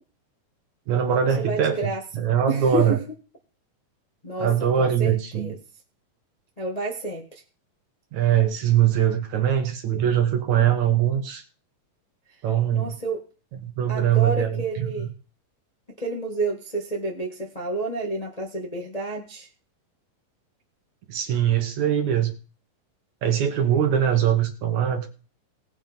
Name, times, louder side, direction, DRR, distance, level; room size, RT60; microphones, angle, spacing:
voice 1, 0.9-3.0 4.4-5.5 8.1-11.4 12.4-13.0 13.6-14.6 21.1-22.3 23.2-25.1, right 9 dB, 65° right, 7 dB, 2.4 m, -22 dB
voice 2, 1.4-2.0 2.5-3.0 4.2-4.5 4.8-5.6 6.6-7.3 12.7-13.2 13.9-15.1 16.0-19.5, right 2 dB, 20° left, -2 dB, 1.0 m, -29 dB
18.0 x 7.6 x 5.3 m, 0.37 s
omnidirectional pair, 4.0 m